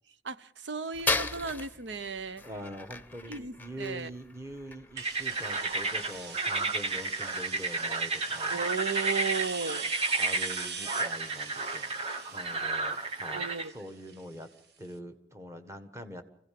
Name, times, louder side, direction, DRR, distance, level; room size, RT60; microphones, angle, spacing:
voice 1, 0.2-2.4 3.3-4.1 8.5-9.9 13.3-13.7, right 5 dB, 90° right, 0.8 m, -35 dB
sound 1, 0.9-7.6, left 3 dB, 10° left, 0.8 m, -38 dB
voice 2, 2.4-8.6 10.2-14.5 14.8-16.2, equal, 15° right, 1.5 m, -44 dB
sound 2, 5.0-13.7, right 3 dB, 35° right, 1.3 m, -32 dB
sound 3, 5.0-14.6, right 5 dB, 65° right, 1.5 m, -41 dB
25.0 x 16.5 x 7.7 m
head